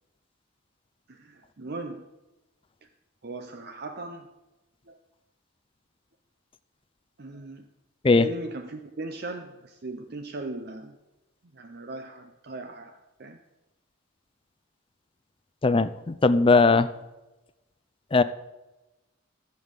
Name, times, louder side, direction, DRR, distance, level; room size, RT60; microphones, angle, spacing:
voice 1, 1.1-2.1 3.2-4.3 4.9-5.0 7.2-7.6 8.2-11.0 11.5-13.4, right 2 dB, 50° right, 7 dB, 0.6 m, -38 dB
voice 2, 15.6-16.9 18.1-18.2, left 3 dB, 25° left, 14 dB, 0.4 m, -19 dB
14.5 x 5.4 x 8.2 m, 1.1 s
head